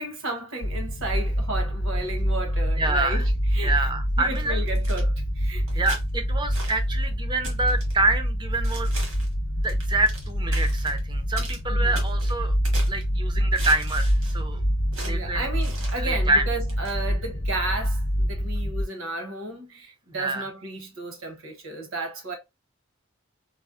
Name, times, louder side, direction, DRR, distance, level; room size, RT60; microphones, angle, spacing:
voice 1, 0.0-3.9 4.2-5.8 11.7-11.9 15.0-22.4, right 2 dB, 70° right, 0.9 m, -33 dB
sound 1, 0.6-18.8, equal, 55° left, 0.5 m, -26 dB
voice 2, 2.8-3.2 3.6-4.6 5.7-8.9 9.6-12.5 12.9-14.6 15.0-15.5 16.0-16.4 20.1-20.5, right 2 dB, 20° right, 0.5 m, -27 dB
sound 2, 4.3-5.0 5.7-6.0 6.5-6.8 7.4-8.0 8.6-9.3 9.7-10.3 10.5-11.0 11.4-11.6 11.9-13.0 13.5-14.4 14.9-15.2 15.6-16.0 16.7-17.0, right 3 dB, 85° right, 1.3 m, -39 dB
4.2 x 2.0 x 2.4 m
head